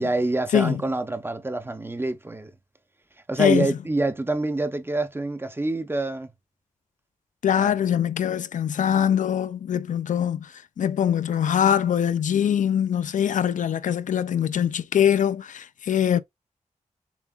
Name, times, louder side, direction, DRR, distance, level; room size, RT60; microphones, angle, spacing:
voice 1, 0.0-2.5 3.3-6.3 7.6-7.8, right 2 dB, 15° right, 0.6 m, -26 dB
voice 2, 7.4-10.5 10.8-16.2, left 9 dB, 75° left, 0.4 m, -23 dB
7.0 x 2.4 x 2.3 m
wide cardioid pair, 90°, 13 cm